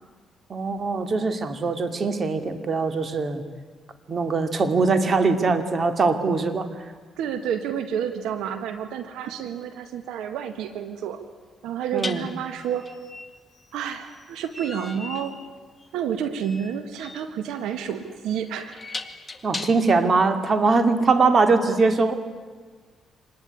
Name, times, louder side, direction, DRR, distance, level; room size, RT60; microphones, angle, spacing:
voice 1, 0.5-3.4 4.1-6.7 11.9-12.3 19.4-22.1, right 4 dB, 40° right, 8 dB, 2.5 m, -22 dB
voice 2, 7.2-11.2 11.6-12.9 13.7-15.4 15.9-18.8, right 8 dB, 90° right, 9 dB, 1.7 m, -30 dB
sound 1, 9.6-9.7 12.0-20.1, left 3 dB, 15° left, 2.0 m, -39 dB
25.5 x 20.0 x 9.9 m, 1.5 s
cardioid pair, 90°, 0 cm